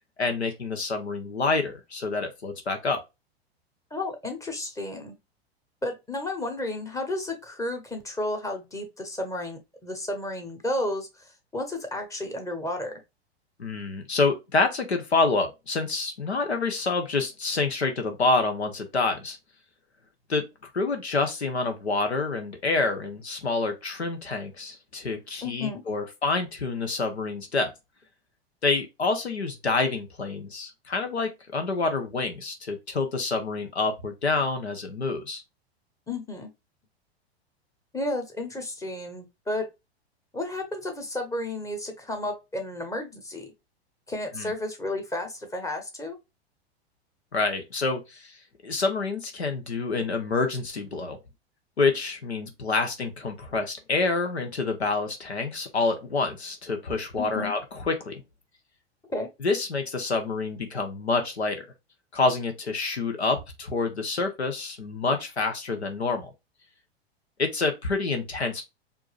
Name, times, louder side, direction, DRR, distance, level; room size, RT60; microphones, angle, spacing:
voice 1, 0.2-3.0 13.6-19.4 20.3-20.5 20.7-27.7 28.6-35.4 44.3-44.5 47.3-48.4 48.6-51.2 51.8-57.6 57.9-58.2 59.4-61.6 62.1-66.3 67.4-68.6, left 3 dB, 85° left, 1.0 m, -27 dB
voice 2, 3.9-5.2 5.8-11.1 11.5-12.9 25.4-25.8 36.1-36.5 37.9-39.7 40.3-43.5 44.1-46.2 57.2-57.5 59.1-59.3, left 1 dB, 10° left, 1.2 m, -32 dB
4.7 x 2.7 x 2.4 m
hypercardioid pair, 100°, 32 cm